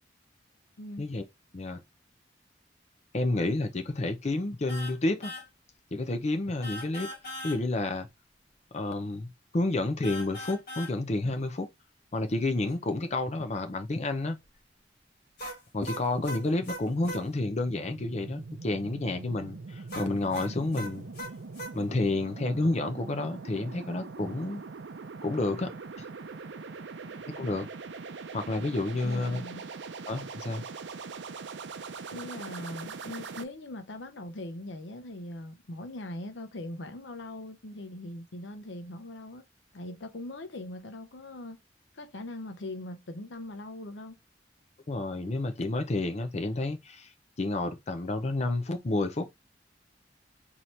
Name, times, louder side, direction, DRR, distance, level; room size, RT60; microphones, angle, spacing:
voice 1, 3.1-5.3 5.9-7.1 7.4-8.1 8.7-9.3 9.5-11.7 12.1-14.4 15.7-21.1 21.7-24.6 25.2-25.7 26.0-26.1 27.3-27.7 28.3-29.4 30.1-30.6 44.9-49.3, left 2 dB, 40° left, 0.6 m, -30 dB
sound 1, 4.7-5.0 5.2-5.5 6.6-7.6 10.0-10.9 15.4-17.2 19.9-21.7, equal, 55° left, 1.6 m, -39 dB
sound 2, 17.0-33.4, right 4 dB, 75° right, 0.5 m, -42 dB
voice 2, 29.0-29.6 32.1-39.5 39.7-41.6 41.9-44.2, left 1 dB, 90° left, 0.8 m, -41 dB
4.3 x 2.9 x 3.1 m
head